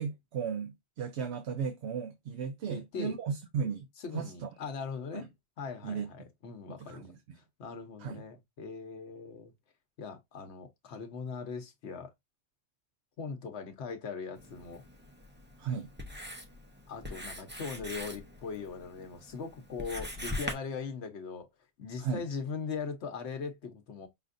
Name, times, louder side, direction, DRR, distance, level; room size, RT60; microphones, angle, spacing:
voice 1, 0.0-3.9 4.1-4.5 5.1-5.2 5.8-6.1 6.8-7.2 8.0-8.2 15.6-15.9 22.0-22.2, right 6 dB, 85° right, 0.9 m, -35 dB
voice 2, 2.7-3.2 4.0-5.3 5.6-7.1 7.6-9.5 10.0-12.1 13.2-14.8 16.9-21.5 21.8-24.1, left 5 dB, 85° left, 1.2 m, -40 dB
Writing, 14.4-20.5, left 1 dB, 10° right, 0.7 m, -42 dB
5.5 x 2.5 x 2.5 m
omnidirectional pair, 1.1 m